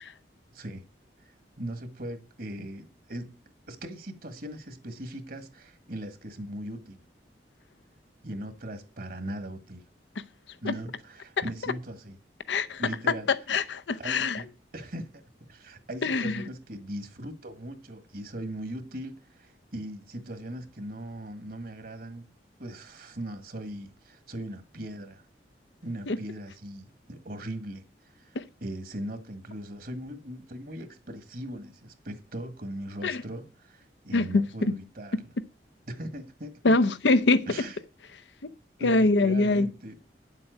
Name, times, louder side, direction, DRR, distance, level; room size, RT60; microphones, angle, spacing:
voice 1, 0.5-0.8 1.2-3.4 3.7-7.0 8.2-9.8 10.6-12.2 12.8-13.3 14.0-22.3 22.6-25.2 25.8-27.8 28.1-28.3 28.6-35.3 35.9-36.8 37.5-37.8 38.8-40.0, right 1 dB, 55° right, 1.6 m, -39 dB
voice 2, 12.5-12.8 13.5-14.4 16.0-16.4 26.1-26.2 33.0-33.2 34.1-34.7 36.6-37.5 38.4-38.5 38.8-39.7, left 2 dB, 85° left, 0.7 m, -24 dB
9.8 x 7.6 x 6.3 m
head